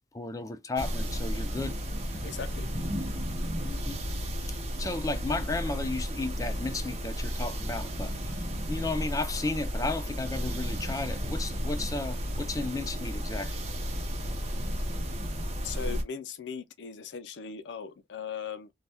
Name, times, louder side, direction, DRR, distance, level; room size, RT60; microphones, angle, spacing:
voice 1, 0.1-1.8 3.6-4.0 4.8-8.3 8.7-13.5, left 2 dB, 20° left, 0.3 m, -34 dB
sound 1, 0.8-16.0, equal, 35° right, 0.7 m, -33 dB
voice 2, 2.2-2.7 15.6-18.7, left 6 dB, 80° left, 0.4 m, -38 dB
2.7 x 2.2 x 3.4 m
head